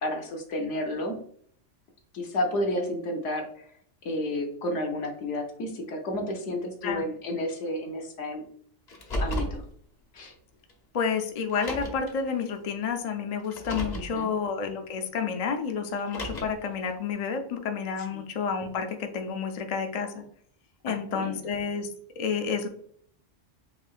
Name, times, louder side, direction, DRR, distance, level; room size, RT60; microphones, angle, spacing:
voice 1, 0.0-1.2 2.1-3.7 4.0-8.4 9.2-9.6 10.1-10.3 13.9-14.3 18.1-18.2 20.9-21.4, left 1 dB, 75° left, 2 dB, 1.2 m, -31 dB
Car, 8.9-9.6 10.7-10.8 11.5-12.1 13.4-14.1 15.9-16.7, left 1 dB, 40° left, 0.8 m, -33 dB
voice 2, 10.9-20.2 20.8-21.9 22.2-22.7, left 6 dB, 55° left, 5 dB, 0.4 m, -30 dB
5.0 x 2.7 x 2.4 m, 0.62 s
omnidirectional pair, 1.3 m